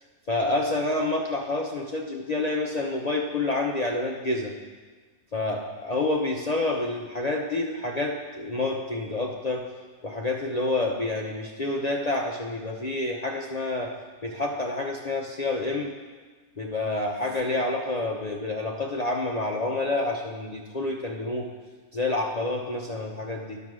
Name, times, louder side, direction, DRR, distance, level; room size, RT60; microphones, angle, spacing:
voice 1, 0.3-4.5 5.3-9.6 10.0-13.9 14.2-15.9 16.6-21.5 21.9-23.6, left 2 dB, 50° left, -1 dB, 0.4 m, -28 dB
11.5 x 5.5 x 6.2 m, 1.4 s
omnidirectional pair, 1.7 m